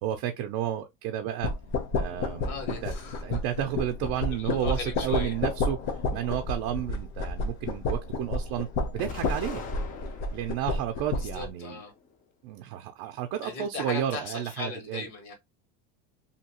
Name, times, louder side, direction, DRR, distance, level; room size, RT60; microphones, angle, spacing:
voice 1, 0.0-1.5 1.9-2.5 2.8-2.9 3.2-5.8 6.1-8.7 8.9-9.6 10.3-11.8 12.4-15.1, right 10 dB, 50° right, 0.4 m, -31 dB
sound 1, 1.4-11.5, left 3 dB, 50° left, 0.7 m, -31 dB
voice 2, 2.4-3.7 4.3-5.4 11.1-11.9 13.4-15.3, left 4 dB, 80° left, 1.6 m, -38 dB
Explosion, 9.0-10.6 11.2-12.1, left 5 dB, 25° left, 0.4 m, -42 dB
2.8 x 2.2 x 2.9 m
cardioid pair, 160°, 34 cm